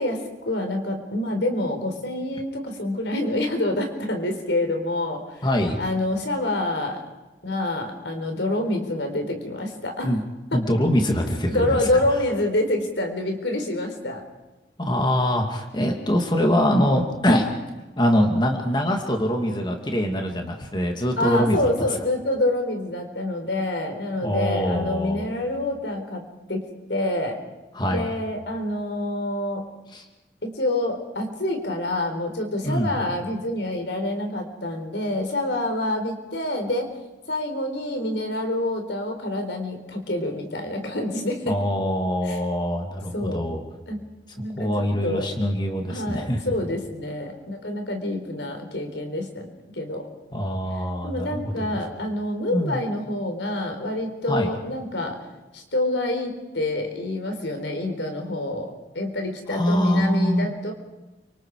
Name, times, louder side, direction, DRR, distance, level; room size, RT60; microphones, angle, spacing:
voice 1, 0.0-5.4 5.8-7.0 7.4-10.2 10.5-10.6 11.5-14.2 21.2-27.4 27.9-29.7 30.4-37.0 37.3-41.6 42.2-42.4 43.1-43.4 43.9-44.0 44.3-45.3 45.9-49.5 49.7-50.1 50.7-55.2 55.5-60.7, left 1 dB, 85° left, 4 dB, 4.3 m, -27 dB
voice 2, 5.4-5.8 10.0-10.2 10.5-11.8 14.8-17.5 18.0-21.7 24.2-25.2 27.7-28.1 29.9-30.0 32.6-32.9 41.5-43.6 44.5-46.5 50.3-51.6 52.5-52.8 54.3-54.5 59.5-60.5, equal, 25° left, 2 dB, 2.5 m, -23 dB
29.5 x 25.5 x 4.9 m, 1.1 s
head